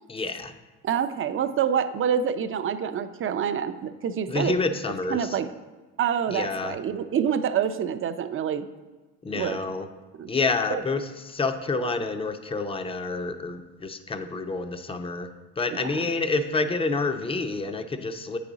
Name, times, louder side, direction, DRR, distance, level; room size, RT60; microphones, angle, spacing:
voice 1, 0.1-0.5 4.3-5.4 6.3-6.8 9.2-9.9 10.3-15.3 15.6-18.4, left 3 dB, 15° left, 9 dB, 0.5 m, -28 dB
voice 2, 0.8-4.5 5.1-5.5 6.0-8.7 9.3-9.6 10.2-10.3 10.7-10.8 15.7-16.1, right 8 dB, 35° right, 11 dB, 0.5 m, -27 dB
8.2 x 4.9 x 3.9 m, 1.3 s
supercardioid pair, 90°, 35 cm